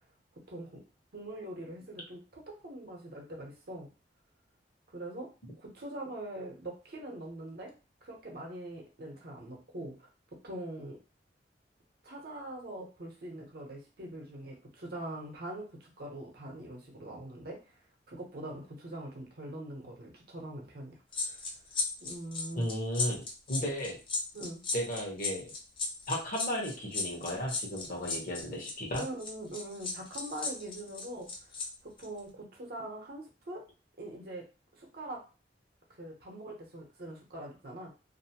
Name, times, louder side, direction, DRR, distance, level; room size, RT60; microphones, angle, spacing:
voice 1, 1.1-3.9 4.9-5.3 5.6-7.7 8.0-10.1 10.4-11.0 12.0-17.8 18.1-21.4 22.0-22.7 24.3-24.6 29.0-31.5 31.8-33.6 34.0-34.4 34.7-35.2 35.9-37.9, right 1 dB, 60° right, 0 dB, 0.8 m, -43 dB
sound 1, 21.1-31.7 32.0-32.2, left 4 dB, 30° left, 0.5 m, -35 dB
voice 2, 22.6-24.0 24.7-25.5 26.1-29.0, equal, 50° left, -2 dB, 1.0 m, -34 dB
2.6 x 2.0 x 2.8 m, 0.32 s
head